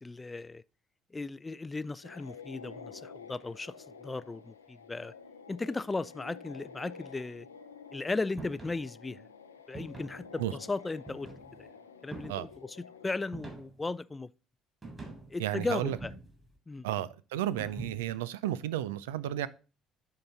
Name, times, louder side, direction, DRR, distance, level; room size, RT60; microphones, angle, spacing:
voice 1, 0.0-0.6 1.1-3.7 4.0-5.1 5.5-7.5 7.9-9.2 9.7-11.7 12.0-12.8 13.0-14.3 15.3-16.1 16.7-16.9, left 3 dB, 20° left, 0.3 m, -36 dB
sound 1, 2.0-13.3, left 5 dB, 90° left, 0.5 m, -50 dB
sound 2, 8.4-8.8 9.7-10.3 11.1-11.6 12.1-12.6 13.3-13.9 14.8-15.3 15.9-16.5 17.6-18.2, right 2 dB, 25° right, 3.5 m, -44 dB
voice 2, 15.4-16.0 16.8-19.5, right 12 dB, 75° right, 0.4 m, -33 dB
10.5 x 3.9 x 4.0 m
figure-of-eight pair, 55°, 0 cm